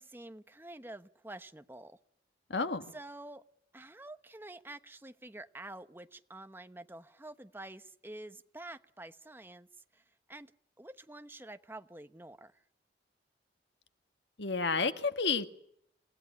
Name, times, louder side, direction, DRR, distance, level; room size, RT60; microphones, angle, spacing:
voice 1, 0.0-2.0 2.9-3.4 3.7-9.7 9.9-10.0 10.3-10.5 10.8-12.5, right 2 dB, 10° right, 10 dB, 1.0 m, -48 dB
voice 2, 2.5-3.0 14.4-15.5, left 4 dB, 80° left, 9 dB, 1.7 m, -31 dB
28.5 x 17.0 x 9.9 m, 0.73 s
head